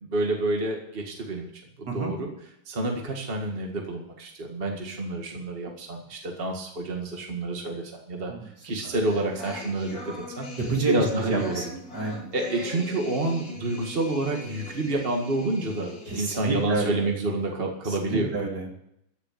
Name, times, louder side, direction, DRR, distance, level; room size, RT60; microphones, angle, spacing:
voice 1, 0.0-1.5 1.8-2.3 2.7-8.3 8.6-10.5 10.9-11.6 12.3-18.3, right 2 dB, 30° right, 1 dB, 2.1 m, -28 dB
sound 1, 8.8-16.7, left 1 dB, 50° left, 3.8 m, -40 dB
voice 2, 10.6-11.7 11.9-12.3 16.1-17.1 18.1-18.7, right 3 dB, 60° right, 0 dB, 3.2 m, -29 dB
14.5 x 6.8 x 9.1 m, 0.74 s
omnidirectional pair, 2.0 m